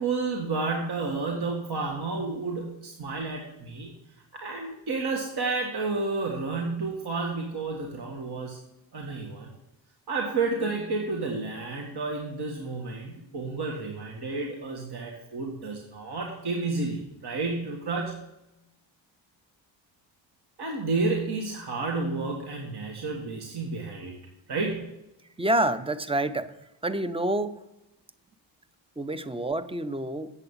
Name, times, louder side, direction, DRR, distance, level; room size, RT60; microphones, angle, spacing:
voice 1, 0.0-3.9 4.3-8.6 8.9-9.5 10.1-18.2 20.6-24.1 24.5-25.0, right 3 dB, 55° right, 0 dB, 1.8 m, -31 dB
voice 2, 25.4-26.5 26.8-27.6 29.0-30.3, right 1 dB, 10° right, 13 dB, 0.7 m, -27 dB
8.3 x 7.0 x 7.2 m, 0.91 s
cardioid pair, 55°, 47 cm